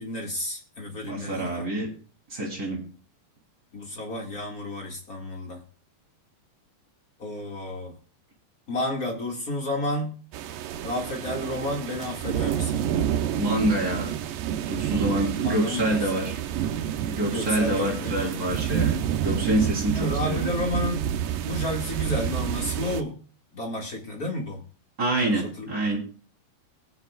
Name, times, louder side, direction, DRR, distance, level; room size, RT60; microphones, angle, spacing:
voice 1, 0.0-1.7 3.7-5.6 7.2-7.9 8.7-10.1 10.8-12.8 15.4-16.0 17.3-18.6 19.9-21.1 21.4-23.2 23.5-24.6 25.2-25.7, left 1 dB, 40° left, 0 dB, 1.2 m, -31 dB
voice 2, 1.0-1.9 2.3-2.8 13.4-14.1 14.6-16.4 17.0-20.6 25.0-26.0, right 1 dB, 25° right, -1 dB, 3.0 m, -26 dB
sound 1, 10.3-23.0, right 10 dB, 85° right, 2.0 m, -29 dB
21.5 x 9.5 x 2.4 m, 0.39 s
omnidirectional pair, 5.0 m